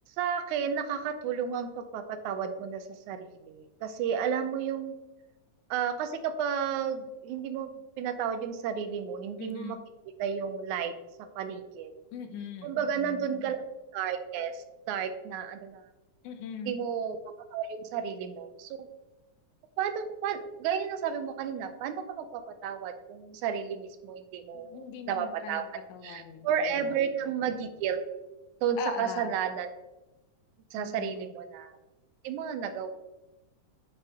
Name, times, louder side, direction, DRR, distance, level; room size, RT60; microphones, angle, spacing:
voice 1, 0.2-5.0 5.7-9.8 10.2-10.9 11.4-11.9 12.6-13.6 13.9-15.8 16.7-17.2 17.5-18.8 19.8-25.6 26.0-28.0 28.6-29.7 30.7-31.8 32.2-32.9, right 7 dB, 85° right, 9 dB, 2.1 m, -32 dB
voice 2, 9.4-9.8 12.1-13.5 16.2-16.9 24.5-27.0 28.8-29.4 30.8-31.3, left 6 dB, 85° left, 8 dB, 2.3 m, -41 dB
9.7 x 6.0 x 3.6 m, 1.0 s
omnidirectional pair, 3.4 m